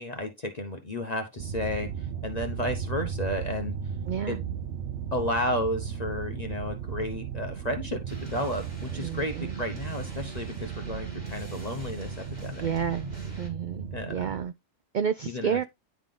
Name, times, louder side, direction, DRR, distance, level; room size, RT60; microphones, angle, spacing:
voice 1, 0.0-3.7 4.3-4.4 5.1-12.7 13.9-14.4 15.3-15.6, left 1 dB, 35° left, 1.0 m, -32 dB
sound 1, 1.4-14.4, right 7 dB, 60° right, 0.8 m, -36 dB
voice 2, 4.1-4.4 9.0-9.5 12.6-13.1 13.4-14.5 14.9-15.6, right 7 dB, 80° right, 0.4 m, -30 dB
sound 2, 8.1-13.5, right 1 dB, 35° right, 2.8 m, -45 dB
10.5 x 3.6 x 3.7 m
omnidirectional pair, 1.4 m